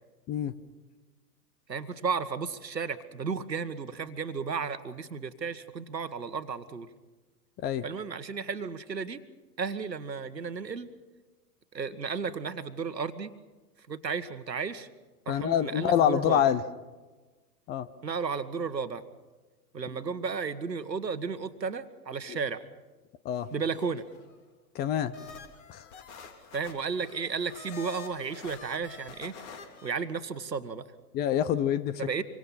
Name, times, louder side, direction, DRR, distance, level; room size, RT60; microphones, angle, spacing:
voice 1, 1.7-6.9 7.8-9.2 9.6-10.9 11.7-13.3 13.9-14.9 15.2-16.4 18.0-19.0 19.7-22.7 23.5-24.0 26.5-29.4 29.8-30.9 32.0-32.2, right 5 dB, 85° right, 11 dB, 1.6 m, -33 dB
voice 2, 15.3-16.6 17.7-17.9 23.2-23.5 24.7-25.1 25.7-25.9 31.1-32.0, left 10 dB, 20° left, 15 dB, 0.7 m, -26 dB
sound 1, 23.3-24.3 25.1-29.9, left 5 dB, 45° left, 3.4 m, -47 dB
26.0 x 24.5 x 5.7 m, 1.3 s
figure-of-eight pair, 105°, 49 cm